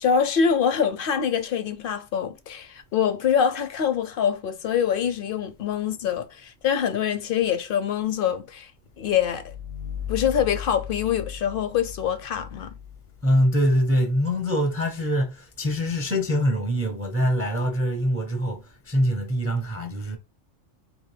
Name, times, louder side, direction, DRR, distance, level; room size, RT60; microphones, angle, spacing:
voice 1, 0.0-8.7 9.0-9.5 10.1-12.7, left 8 dB, 60° left, 0.6 m, -24 dB
sound 1, 9.0-13.7, left 8 dB, 80° left, 1.0 m, -37 dB
voice 2, 13.2-20.2, equal, 25° right, 0.3 m, -24 dB
3.9 x 2.7 x 3.2 m
omnidirectional pair, 1.3 m